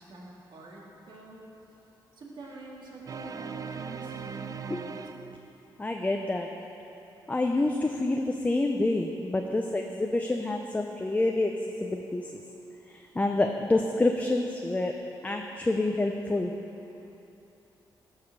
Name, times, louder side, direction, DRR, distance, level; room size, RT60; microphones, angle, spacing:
voice 1, 0.0-1.4 2.2-4.9, right 2 dB, 65° right, -4 dB, 2.1 m, -46 dB
sound 1, 3.1-5.8, right 6 dB, 45° right, 0.4 m, -39 dB
voice 2, 5.8-6.5 7.3-11.5 11.8-12.4 12.9-14.9 15.2-16.5, left 2 dB, 20° left, 3 dB, 0.5 m, -27 dB
12.5 x 4.8 x 6.6 m, 2.9 s
cardioid pair, 90°, 8 cm